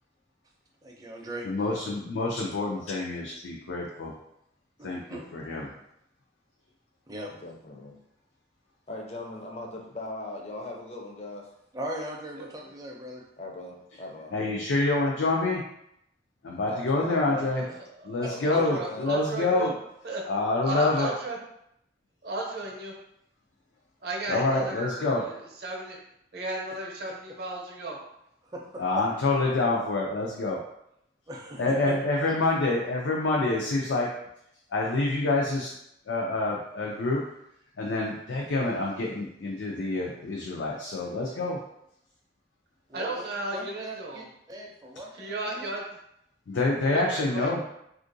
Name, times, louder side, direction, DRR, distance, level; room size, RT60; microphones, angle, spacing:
voice 1, 0.8-1.9 2.2-2.3 4.8-5.2 7.1-7.4 11.7-13.2 18.2-18.3 28.4-29.0 31.3-31.9 32.3-32.4 42.9-43.2 43.5-45.7, right 1 dB, 20° right, -1 dB, 0.4 m, -39 dB
voice 2, 1.4-4.1 4.8-5.0 5.3-5.7 14.3-15.6 16.4-17.6 18.0-19.7 20.3-21.1 24.3-25.2 28.8-30.6 31.6-34.1 34.7-35.7 36.1-37.2 37.8-41.6 46.5-47.6, left 2 dB, 90° left, -2 dB, 0.5 m, -27 dB
voice 3, 2.3-3.0 3.3-3.5 5.3-5.8 7.3-8.0 8.9-11.5 13.4-14.3 16.6-17.6 18.3-19.1, left 2 dB, 35° left, 1 dB, 0.4 m, -40 dB
voice 4, 12.4-12.7 17.6-17.7 18.0-19.7 20.0-20.2 20.6-21.4 22.2-22.9 24.0-25.3 25.6-26.0 26.3-28.0 42.9-44.2 45.1-45.8 46.9-47.6, right 2 dB, 55° right, -1 dB, 0.7 m, -34 dB
3.5 x 2.4 x 2.6 m, 0.79 s
head